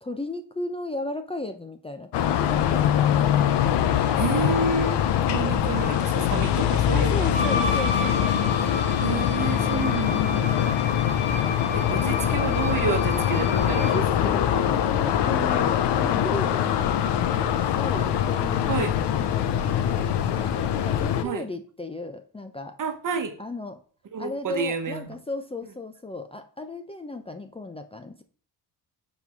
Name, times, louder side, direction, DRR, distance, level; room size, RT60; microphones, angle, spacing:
voice 1, 0.0-3.1 6.9-10.8 11.8-12.4 13.8-18.8 19.1-22.8 23.4-23.8 24.2-28.2, left 2 dB, 15° left, 8 dB, 0.7 m, -36 dB
sound 1, 2.1-21.2, left 10 dB, 80° left, 0.9 m, -23 dB
voice 2, 4.2-7.5 8.0-8.1 9.0-10.5 11.7-14.4 18.7-18.9 21.2-21.4 22.8-23.3 24.1-25.1, right 4 dB, 50° right, 7 dB, 1.3 m, -30 dB
Wind instrument woodwind instrument, 7.3-14.1, left 2 dB, 15° right, 1.7 m, -32 dB
5.7 x 4.5 x 5.9 m, 0.43 s
cardioid pair, 95°, 41 cm